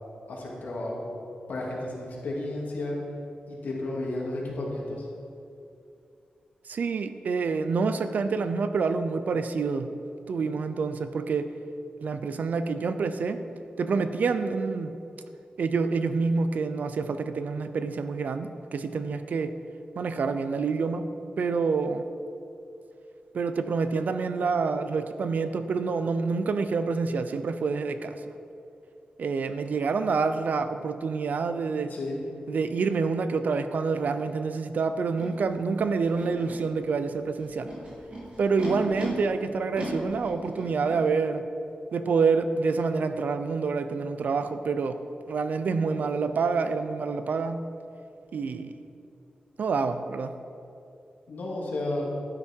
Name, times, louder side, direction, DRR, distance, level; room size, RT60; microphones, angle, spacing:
voice 1, 0.3-1.2 1.5-3.0 3.5-5.1 31.9-32.2 51.3-52.0, left 2 dB, 85° left, -3 dB, 2.7 m, -32 dB
voice 2, 6.7-9.9 10.3-11.5 12.0-13.4 13.8-15.0 15.6-19.6 20.0-21.1 21.4-22.1 23.3-28.2 29.2-31.9 32.5-37.7 38.4-41.5 41.9-45.0 45.3-47.7 48.3-48.7 49.6-50.3, right 4 dB, 75° right, 10 dB, 0.6 m, -27 dB
Animal, 35.2-35.3 36.0-36.6 37.4-39.1 39.7-41.0, right 1 dB, 45° right, 2.9 m, -37 dB
12.0 x 9.9 x 4.6 m, 2.6 s
wide cardioid pair, 135°, 3 cm